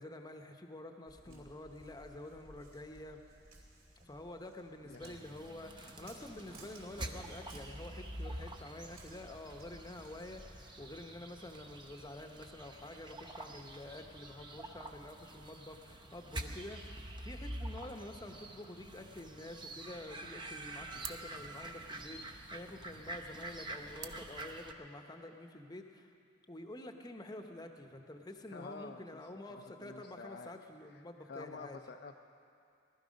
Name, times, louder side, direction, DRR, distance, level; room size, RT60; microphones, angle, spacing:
voice 1, 0.0-3.2 4.1-16.8 17.2-26.1 26.5-31.8, left 1 dB, 20° left, 5 dB, 0.8 m, -48 dB
Walk footsteps, 1.1-10.7, right 2 dB, 50° right, 3.3 m, -59 dB
voice 2, 4.8-5.2 20.9-21.1 28.5-29.2 29.5-30.6 30.9-32.1, left 4 dB, 55° left, 5 dB, 0.5 m, -50 dB
sound 1, 5.0-24.7, right 1 dB, 25° right, 0.7 m, -47 dB
sound 2, 20.2-25.2, right 9 dB, 80° right, 0.7 m, -54 dB
18.5 x 12.5 x 5.2 m, 2.5 s
head